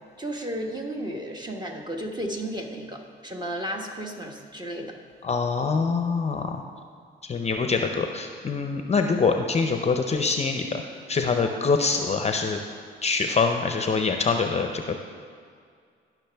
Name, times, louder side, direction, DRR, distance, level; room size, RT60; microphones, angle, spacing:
voice 1, 0.2-4.9, right 1 dB, 20° right, 1 dB, 1.2 m, -33 dB
voice 2, 5.2-6.6 7.2-10.8 11.1-12.6 13.0-15.0, left 4 dB, 35° left, 5 dB, 0.6 m, -24 dB
17.0 x 6.1 x 3.4 m, 2.1 s
cardioid pair, 90°, 20 cm